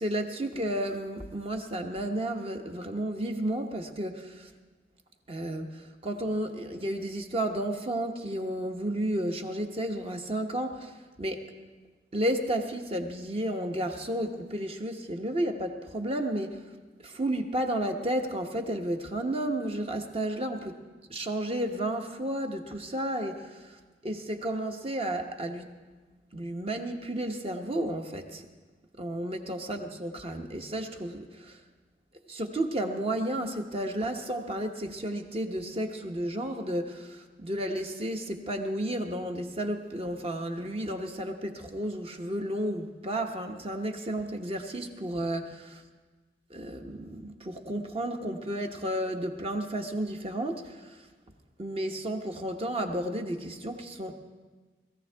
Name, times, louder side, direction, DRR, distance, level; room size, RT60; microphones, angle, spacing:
voice 1, 0.0-4.5 5.3-11.5 12.1-16.6 17.0-20.7 21.1-25.7 26.3-28.5 29.0-31.6 32.3-45.7 46.5-51.0 51.6-54.1, right 1 dB, 30° right, 4 dB, 1.0 m, -32 dB
20.0 x 14.5 x 3.4 m, 1.3 s
head